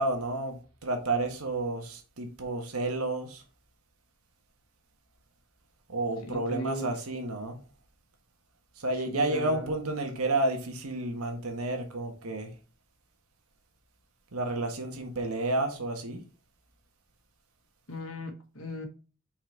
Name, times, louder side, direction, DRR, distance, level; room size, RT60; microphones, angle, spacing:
voice 1, 0.0-3.4 5.9-7.6 8.8-12.5 14.3-16.2, right 2 dB, 80° right, 1.5 m, -31 dB
voice 2, 6.2-6.9 9.1-9.7 17.9-18.9, equal, 65° left, 1.4 m, -37 dB
5.8 x 4.4 x 4.5 m
head